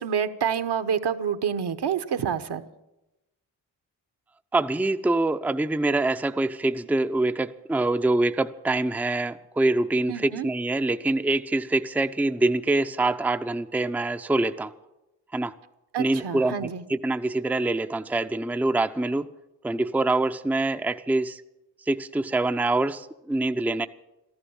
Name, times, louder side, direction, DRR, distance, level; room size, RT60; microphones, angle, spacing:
voice 1, 0.0-2.6 10.1-10.5 15.9-16.8, right 7 dB, 60° right, 10 dB, 1.2 m, -28 dB
voice 2, 4.5-14.7 15.3-15.5 16.0-19.3 19.6-21.4 21.9-23.9, right 2 dB, 5° right, 8 dB, 0.6 m, -25 dB
14.0 x 13.0 x 7.2 m, 0.94 s
supercardioid pair, 45°, 45 cm